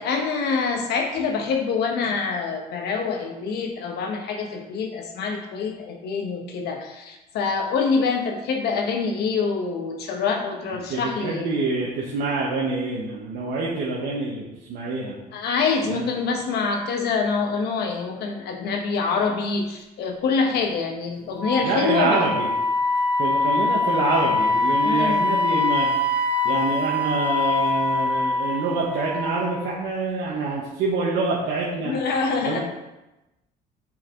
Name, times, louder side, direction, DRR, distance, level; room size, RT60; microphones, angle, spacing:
voice 1, 0.0-11.5 15.3-22.2 24.8-25.2 31.8-32.6, left 5 dB, 75° left, 3 dB, 1.0 m, -25 dB
voice 2, 10.7-15.2 15.8-16.0 21.6-22.5 23.2-25.9 26.4-31.9 32.4-32.6, right 3 dB, 75° right, -4 dB, 1.0 m, -26 dB
Wind instrument woodwind instrument, 21.4-29.6, left 3 dB, 10° right, 1.6 m, -23 dB
5.8 x 4.7 x 3.7 m, 0.99 s
cardioid pair, 110°, 17 cm